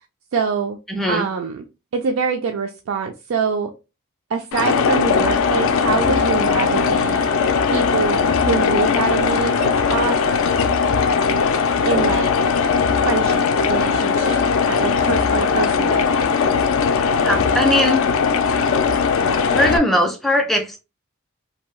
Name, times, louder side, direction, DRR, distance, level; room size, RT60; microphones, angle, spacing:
voice 1, 0.3-0.8 1.1-1.7 1.9-3.7 4.3-7.2 7.7-10.2 11.8-12.3 13.1-16.3, right 5 dB, 65° right, 5 dB, 0.3 m, -25 dB
voice 2, 0.9-1.3 17.2-18.0 19.5-20.8, equal, ahead, 3 dB, 0.4 m, -19 dB
sound 1, 4.5-19.8, left 5 dB, 65° left, 0.3 m, -19 dB
2.7 x 2.2 x 3.0 m, 0.29 s
head